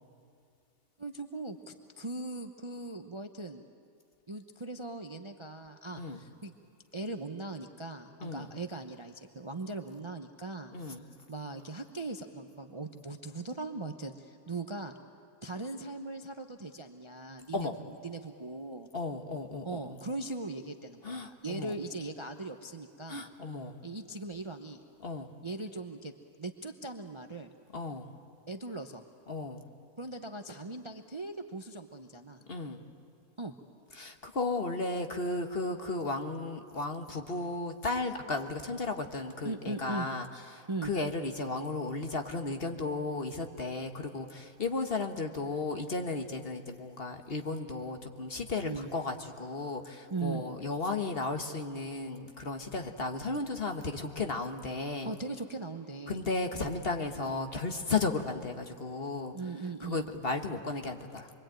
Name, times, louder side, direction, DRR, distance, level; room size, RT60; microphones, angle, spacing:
voice 1, 1.0-3.6 4.3-6.5 6.9-10.8 11.3-14.9 15.4-17.7 18.0-18.9 19.6-23.3 23.8-24.8 25.4-26.1 26.4-27.5 28.5-29.0 30.0-32.4 33.4-33.6 39.4-40.1 40.7-40.9 48.6-48.9 50.1-50.4 55.0-56.2 56.6-56.7 59.3-60.0, right 3 dB, 25° right, 6 dB, 0.7 m, -39 dB
voice 2, 10.7-11.0 17.5-17.7 18.9-20.0 21.0-21.7 23.1-23.8 25.0-25.3 27.7-28.1 29.3-29.6 32.5-32.8 33.9-40.3 40.5-55.1 56.1-59.3 59.8-61.3, left 3 dB, 40° left, 5 dB, 1.5 m, -34 dB
25.5 x 23.0 x 9.1 m, 2.4 s
omnidirectional pair, 1.6 m